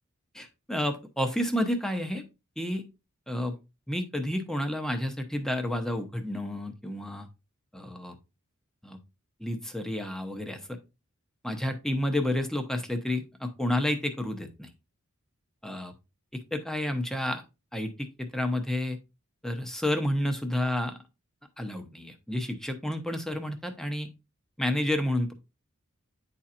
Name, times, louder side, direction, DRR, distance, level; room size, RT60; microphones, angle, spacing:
voice 1, 0.3-2.2 2.6-2.9 3.3-3.6 3.9-7.3 7.7-8.2 8.8-9.0 9.4-10.8 11.4-14.7 15.6-15.9 16.3-17.4 17.7-19.0 19.4-20.9 21.6-24.1 24.6-25.3, left 1 dB, ahead, 5 dB, 0.8 m, -30 dB
9.8 x 4.3 x 2.5 m, 0.26 s
head